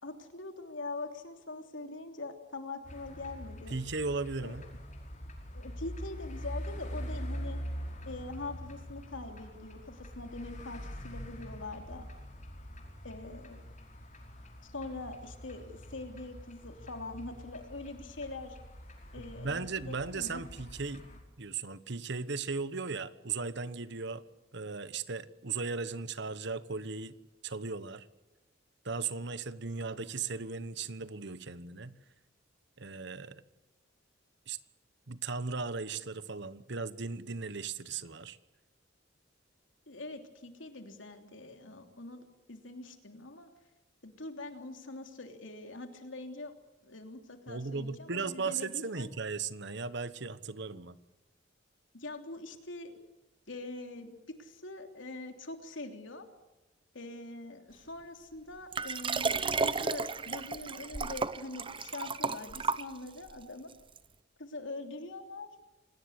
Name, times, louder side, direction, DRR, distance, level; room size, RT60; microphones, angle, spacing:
voice 1, 0.0-3.8 4.4-4.5 5.5-7.6 8.0-12.1 13.0-13.6 14.6-18.6 19.1-20.4 39.9-43.5 44.0-46.5 46.8-49.1 51.9-53.0 53.5-56.3 56.9-63.7 64.4-65.5, left 2 dB, 80° left, 6 dB, 3.2 m, -43 dB
sound 1, 2.8-21.2, equal, 40° left, 5.1 m, -44 dB
voice 2, 3.7-4.6 19.4-21.0 21.4-24.2 24.5-27.2 27.4-28.1 28.8-31.9 32.8-33.4 34.5-34.6 35.1-38.4 47.5-51.0, right 4 dB, 65° right, 15 dB, 1.2 m, -37 dB
Liquid, 58.7-63.3 64.0-64.1, right 4 dB, 25° right, 0.9 m, -33 dB
27.0 x 18.5 x 8.3 m, 1.1 s
head